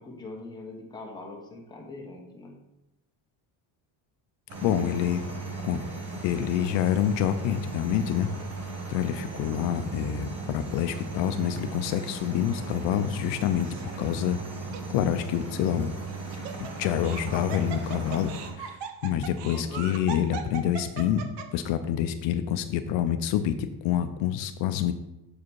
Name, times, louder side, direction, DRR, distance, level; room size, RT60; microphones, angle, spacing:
voice 1, 0.0-2.6 5.0-5.2 9.3-9.6 19.4-20.2, left 2 dB, 10° left, -1 dB, 1.2 m, -43 dB
sound 1, 4.5-18.5, right 3 dB, 30° right, 1.5 m, -37 dB
voice 2, 4.6-5.2 5.6-5.8 6.2-8.3 8.9-13.7 14.0-14.4 14.9-15.9 16.6-18.3 18.6-21.3 21.5-24.9, left 10 dB, 70° left, 9 dB, 0.6 m, -27 dB
Laughter, 13.6-14.1 14.7-14.8 16.1-21.7, right 7 dB, 65° right, 0.9 m, -39 dB
7.0 x 5.0 x 4.6 m, 0.91 s
cardioid pair, 165°, 46 cm